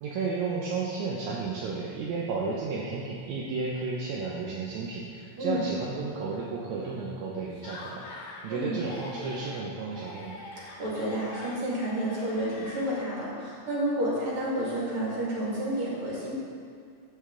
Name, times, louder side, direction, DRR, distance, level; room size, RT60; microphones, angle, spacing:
voice 1, 0.0-10.4, right 4 dB, 75° right, -4 dB, 2.1 m, -33 dB
Laughter, 7.5-8.5 8.7-9.6 9.9-13.3, left 2 dB, 80° left, 3.0 m, -44 dB
voice 2, 8.5-8.8 10.6-16.3, equal, 45° right, -6 dB, 2.8 m, -30 dB
14.0 x 5.1 x 3.7 m, 2.2 s
omnidirectional pair, 3.4 m